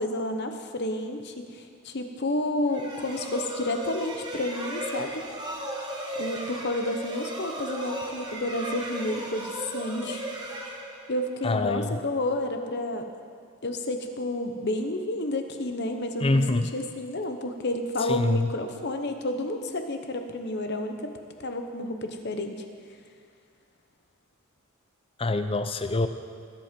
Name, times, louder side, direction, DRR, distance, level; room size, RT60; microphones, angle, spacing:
voice 1, 0.0-5.2 6.1-10.2 11.1-13.1 13.6-20.9 21.4-22.6, left 1 dB, 50° left, 6 dB, 1.0 m, -30 dB
sound 1, 2.7-11.4, right 1 dB, 20° right, 1.5 m, -36 dB
voice 2, 11.4-12.0 16.2-16.7 18.1-18.5 25.2-26.1, left 2 dB, 25° left, 9 dB, 0.6 m, -25 dB
20.5 x 8.1 x 5.2 m, 2.1 s
head